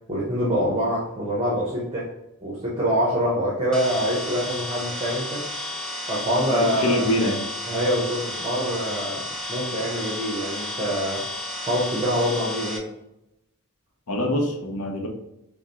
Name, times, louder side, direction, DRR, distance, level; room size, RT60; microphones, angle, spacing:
voice 1, 0.1-2.1 2.4-5.5 6.1-7.1 7.7-11.2 11.6-12.9, equal, 25° right, -5 dB, 0.9 m, -25 dB
sound 1, 3.7-12.8, left 1 dB, 5° left, 0.5 m, -32 dB
voice 2, 6.4-7.5 14.1-15.1, left 1 dB, 85° left, 2 dB, 0.8 m, -25 dB
5.8 x 2.2 x 3.0 m, 0.88 s
head